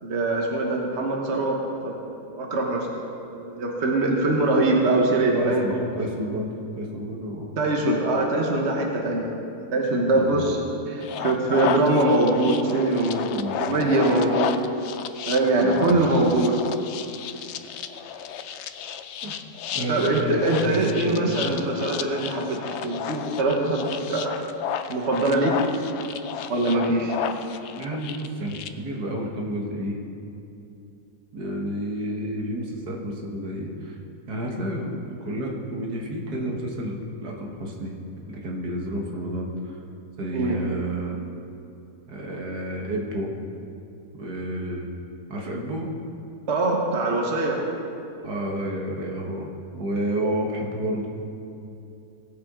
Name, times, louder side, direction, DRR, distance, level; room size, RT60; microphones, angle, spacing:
voice 1, 0.0-1.6 1.8-2.1 2.3-2.9 3.3-5.6 7.6-9.5 9.7-14.6 15.2-16.6 19.9-24.4 24.9-25.5 26.5-27.2 40.3-40.7 46.5-47.6, right 2 dB, 45° right, 0 dB, 1.4 m, -23 dB
voice 2, 5.3-7.6 10.1-10.4 13.3-13.6 15.6-15.9 19.2-19.3 19.7-21.3 27.7-30.0 31.3-34.0 34.3-37.9 38.3-39.8 40.2-41.2 42.1-43.3 44.2-44.9 45.3-45.9 48.2-49.5 49.7-51.1, right 1 dB, 75° right, -1 dB, 1.9 m, -30 dB
sound 1, 11.0-28.7, left 8 dB, 80° left, 0.6 m, -33 dB
18.0 x 8.3 x 3.7 m, 2.7 s
omnidirectional pair, 1.7 m